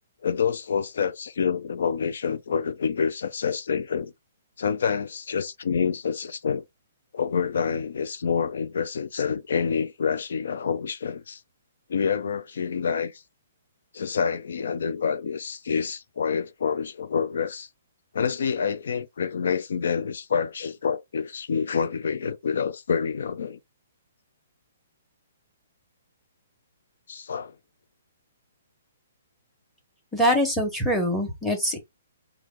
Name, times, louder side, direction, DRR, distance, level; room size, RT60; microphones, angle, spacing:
voice 1, 0.2-4.1 4.6-6.7 7.1-11.4 11.9-13.2 13.9-17.7 18.1-23.6 27.1-27.5, left 6 dB, 75° left, 0.4 m, -27 dB
voice 2, 30.1-31.8, equal, ahead, 1.2 m, -23 dB
4.6 x 2.3 x 3.6 m
hypercardioid pair, 160°, 0 cm